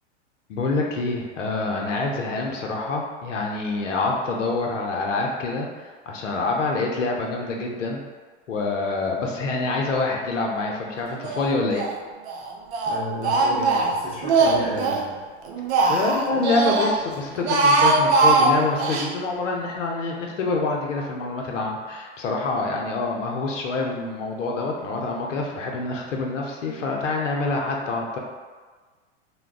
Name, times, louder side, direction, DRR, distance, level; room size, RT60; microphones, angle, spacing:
voice 1, 0.5-8.0 8.5-11.8 15.9-28.2, left 3 dB, 90° left, 0 dB, 0.6 m, -26 dB
Speech, 11.2-12.0 12.3-15.1 15.4-16.9 17.3-19.1, right 3 dB, 65° right, 0.5 m, -21 dB
voice 2, 12.9-15.2, right 1 dB, 15° left, -6 dB, 0.8 m, -32 dB
2.3 x 2.2 x 3.5 m, 1.4 s
hypercardioid pair, 105°, 36 cm